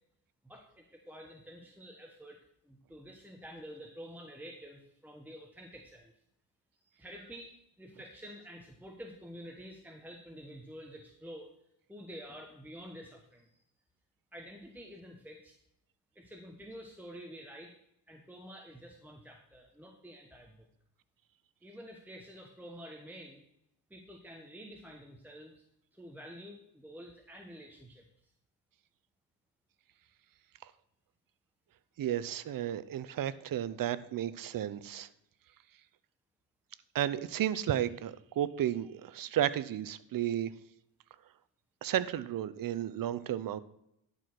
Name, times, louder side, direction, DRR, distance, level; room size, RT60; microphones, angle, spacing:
voice 1, 0.4-2.4 2.6-6.1 6.8-11.5 11.9-13.5 14.3-15.5 16.1-17.7 18.1-20.7 21.6-23.4 23.9-25.6 25.9-28.3, equal, 5° right, 1 dB, 1.2 m, -49 dB
voice 2, 32.0-35.1 36.9-40.5 41.8-43.6, right 11 dB, 50° right, 16 dB, 0.7 m, -33 dB
11.0 x 4.9 x 6.0 m, 0.78 s
cardioid pair, 80°, 42 cm